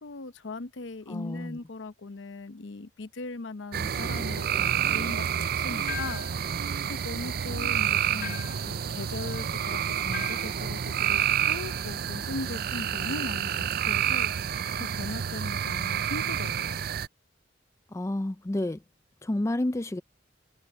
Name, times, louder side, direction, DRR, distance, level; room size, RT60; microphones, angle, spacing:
voice 1, 0.0-6.5 6.9-11.2 11.5-14.3 14.8-16.8, left 2 dB, 75° left, 0.8 m, -39 dB
voice 2, 1.1-1.6 17.9-18.8 19.2-20.0, left 1 dB, 15° left, 0.4 m, -30 dB
sound 1, 3.7-17.1, right 9 dB, 50° right, 0.4 m, -29 dB
sound 2, 5.9-6.4 8.2-8.7 10.1-10.5, left 7 dB, 45° left, 0.9 m, -38 dB
head